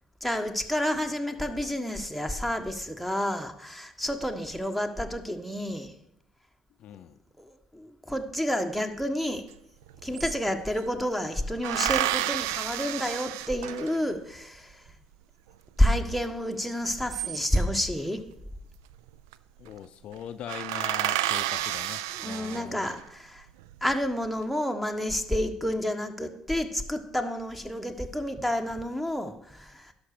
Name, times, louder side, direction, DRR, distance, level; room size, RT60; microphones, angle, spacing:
voice 1, 0.2-5.9 7.4-9.4 10.0-14.8 15.8-18.2 22.2-23.4 23.8-29.9, equal, ahead, 7 dB, 1.4 m, -29 dB
voice 2, 6.8-7.2 19.6-23.0, left 9 dB, 60° left, 11 dB, 0.5 m, -41 dB
sound 1, 9.5-9.6 9.8-10.9 11.6-14.2 16.8-17.8 19.0-19.3 19.7-19.8 20.1-20.2 20.5-23.0 23.6-24.3, right 14 dB, 80° right, 0.3 m, -31 dB
11.5 x 6.0 x 6.6 m, 0.78 s
hypercardioid pair, 50°, 2 cm